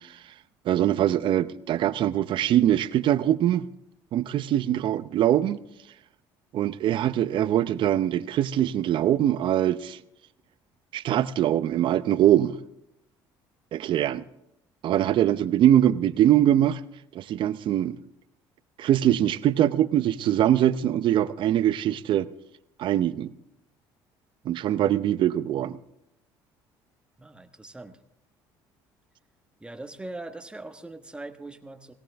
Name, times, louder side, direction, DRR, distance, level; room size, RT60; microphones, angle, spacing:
voice 1, 0.7-3.7 4.1-5.6 6.5-10.0 10.9-12.6 13.7-14.2 14.8-16.8 17.1-18.0 18.8-22.3 22.8-23.3 24.4-25.8, right 11 dB, 60° right, 15 dB, 0.7 m, -22 dB
voice 2, 15.0-15.4 24.7-24.9 27.2-28.0 29.6-31.9, right 2 dB, 10° right, 8 dB, 1.3 m, -41 dB
18.0 x 17.5 x 3.5 m, 0.82 s
supercardioid pair, 85°, 10 cm